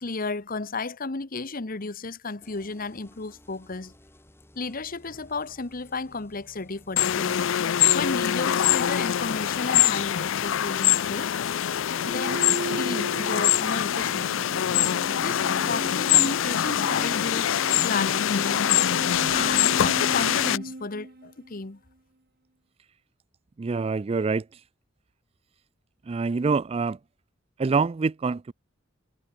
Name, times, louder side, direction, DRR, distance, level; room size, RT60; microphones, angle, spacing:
voice 1, 0.0-3.9 4.5-7.5 7.9-11.3 12.0-12.4 12.8-14.6 15.2-18.7 19.3-21.8, left 3 dB, 45° left, 1.1 m, -33 dB
sound 1, 2.4-19.5, left 1 dB, 10° left, 3.6 m, -55 dB
sound 2, 7.0-20.6, left 11 dB, 65° left, 0.4 m, -24 dB
sound 3, 11.9-21.6, right 2 dB, 50° right, 1.4 m, -37 dB
voice 2, 23.6-24.6 26.1-27.0 27.6-28.5, right 4 dB, 30° right, 0.3 m, -26 dB
head